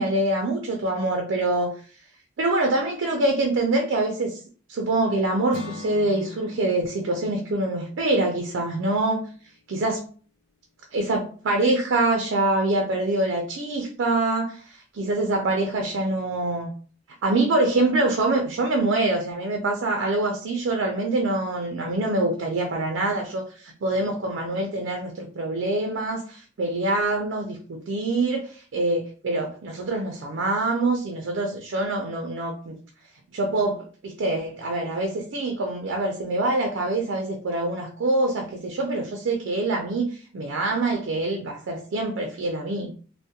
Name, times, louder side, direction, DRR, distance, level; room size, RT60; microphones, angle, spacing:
voice 1, 0.0-1.7 2.4-4.4 4.7-9.2 9.7-10.0 10.9-16.7 17.2-32.7 33.3-42.9, right 2 dB, 60° right, 0.4 m, -25 dB
Acoustic guitar / Strum, 5.5-9.6, left 4 dB, 50° left, 0.4 m, -43 dB
2.3 x 2.0 x 2.7 m
head